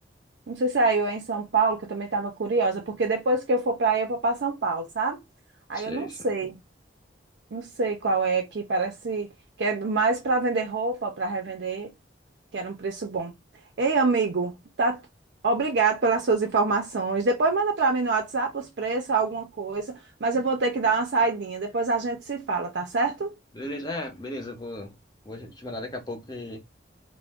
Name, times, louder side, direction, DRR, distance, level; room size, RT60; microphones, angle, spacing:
voice 1, 0.5-5.2 5.7-6.6 7.5-9.3 9.6-11.9 12.5-13.3 13.8-14.5 14.8-15.0 15.4-23.3, right 3 dB, 65° right, 0.5 m, -25 dB
voice 2, 5.7-6.2 23.5-25.0 25.2-26.6, left 1 dB, 20° left, 0.6 m, -36 dB
2.4 x 2.1 x 3.4 m
head